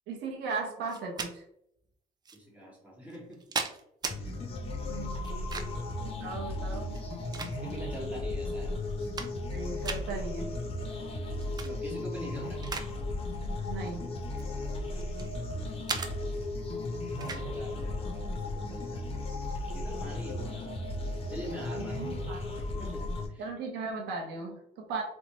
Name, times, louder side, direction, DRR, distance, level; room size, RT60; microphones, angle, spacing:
voice 1, 0.1-1.4 4.9-5.5 6.0-7.0 9.5-10.6 13.7-14.0 21.8-22.4 23.4-25.0, right 4 dB, 85° right, 1 dB, 0.7 m, -37 dB
sound 1, 0.9-1.3 2.3-2.4 3.1-4.2 5.2-5.9 6.9-7.9 8.5-8.6 8.9-9.6 9.8-10.0 11.4-11.7 12.1-12.9 13.2-13.5 14.2-15.3 15.9-16.1 17.2-17.5, right 4 dB, 25° right, 0.3 m, -37 dB
voice 2, 2.3-3.7 4.2-4.4 5.2-5.8 7.5-8.8 11.6-12.6 14.4-14.9 17.2-19.3 19.7-20.8 21.3-22.0 22.6-23.5, equal, 10° right, -4 dB, 1.3 m, -45 dB
sound 2, 4.1-23.3, left 2 dB, 35° left, 0.6 m, -35 dB
3.0 x 2.1 x 2.8 m, 0.75 s
cardioid pair, 110°, 17 cm